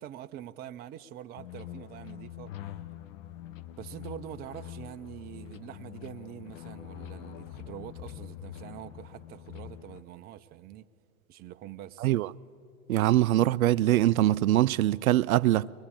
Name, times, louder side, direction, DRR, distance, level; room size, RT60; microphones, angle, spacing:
voice 1, 0.0-2.5 3.8-10.9 11.3-12.1, right 11 dB, 20° right, 0.5 m, -44 dB
sound 1, 1.4-10.0, left 12 dB, 60° left, 1.1 m, -44 dB
voice 2, 12.0-12.3 12.9-15.7, right 14 dB, 70° right, 0.5 m, -23 dB
22.0 x 22.0 x 8.6 m
hypercardioid pair, 105°, 44 cm